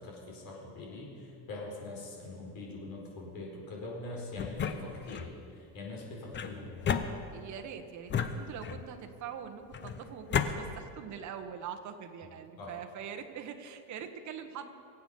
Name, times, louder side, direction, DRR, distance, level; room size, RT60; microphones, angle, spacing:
voice 1, 0.0-5.2 5.5-7.0 12.2-12.3 12.6-12.7, left 2 dB, 55° left, -1 dB, 4.6 m, -43 dB
sound 1, 4.4-5.3 6.3-7.6 8.1-9.0 9.7-10.5, left 7 dB, 25° left, 0.7 m, -33 dB
voice 2, 7.3-14.7, right 8 dB, 45° right, 6 dB, 1.3 m, -43 dB
23.5 x 8.3 x 5.4 m, 2.5 s
cardioid pair, 130°, 42 cm